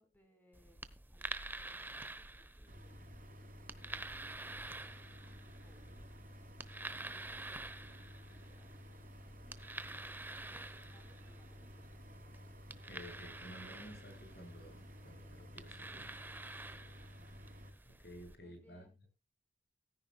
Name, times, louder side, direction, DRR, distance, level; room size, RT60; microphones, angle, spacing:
voice 1, 0.0-3.2 3.7-4.8 5.6-5.9 7.0-12.4 16.6-17.0 18.2-19.0, equal, 10° left, 5 dB, 4.7 m, -69 dB
sound 1, 0.5-18.3, right 2 dB, 10° right, 0.9 m, -49 dB
sound 2, 2.7-17.7, equal, 50° right, 3.8 m, -54 dB
voice 2, 12.7-16.1 17.9-19.1, equal, 60° left, 5 dB, 7.1 m, -53 dB
16.0 x 14.0 x 2.3 m, 0.29 s
head